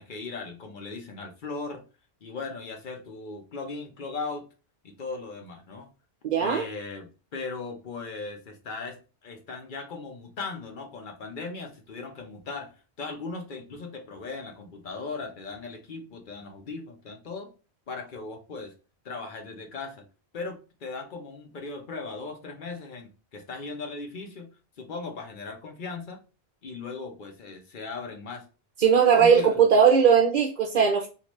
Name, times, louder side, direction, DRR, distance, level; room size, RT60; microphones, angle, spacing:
voice 1, 0.0-1.8 2.2-4.5 4.8-5.9 6.4-17.5 17.9-18.7 19.0-20.0 20.3-24.5 24.8-26.2 26.6-28.4 29.1-29.6, left 4 dB, 50° left, 0.9 m, -38 dB
voice 2, 6.2-6.6 28.8-31.1, right 7 dB, 55° right, 0.6 m, -19 dB
3.7 x 2.6 x 3.0 m
omnidirectional pair, 1.1 m